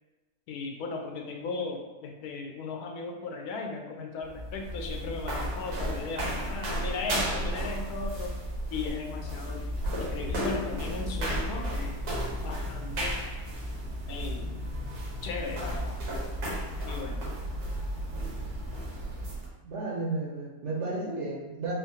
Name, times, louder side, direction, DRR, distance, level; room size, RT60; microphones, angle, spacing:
voice 1, 0.5-8.3 8.7-12.0 12.4-13.2 14.1-14.6 15.2-16.0 16.4-17.3, left 4 dB, 90° left, 2 dB, 1.1 m, -37 dB
sound 1, 4.2-19.5, equal, 85° right, 1.4 m, -33 dB
voice 2, 19.6-21.7, right 3 dB, 60° right, -3 dB, 0.9 m, -33 dB
4.6 x 2.1 x 2.6 m, 1.2 s
omnidirectional pair, 1.6 m